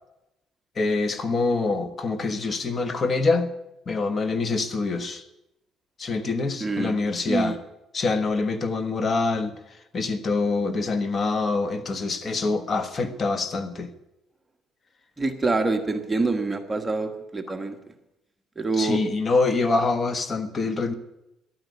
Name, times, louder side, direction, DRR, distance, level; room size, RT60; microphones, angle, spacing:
voice 1, 0.8-3.5 3.9-5.2 6.0-7.6 7.9-9.5 9.9-13.9 18.7-20.9, left 3 dB, 35° left, 1.3 m, -25 dB
voice 2, 6.6-7.5 15.2-17.8 18.6-19.0, right 3 dB, 15° right, 1.3 m, -26 dB
12.0 x 9.3 x 9.5 m
cardioid pair, 110°, 0 cm